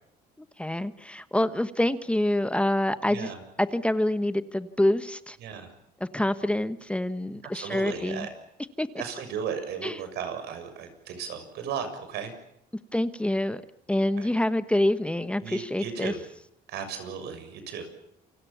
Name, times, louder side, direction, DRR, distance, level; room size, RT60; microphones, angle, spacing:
voice 1, 0.4-3.3 3.6-5.4 6.0-8.3 8.8-8.9 9.8-10.0 12.9-13.6 13.9-16.1, left 1 dB, 5° left, 12 dB, 1.2 m, -26 dB
voice 2, 3.1-3.4 5.4-5.7 7.4-8.3 9.0-12.3 14.2-14.3 15.4-16.2 16.7-17.9, right 7 dB, 75° right, 8 dB, 6.9 m, -35 dB
28.5 x 24.5 x 7.2 m, 0.77 s
cardioid pair, 110°, 17 cm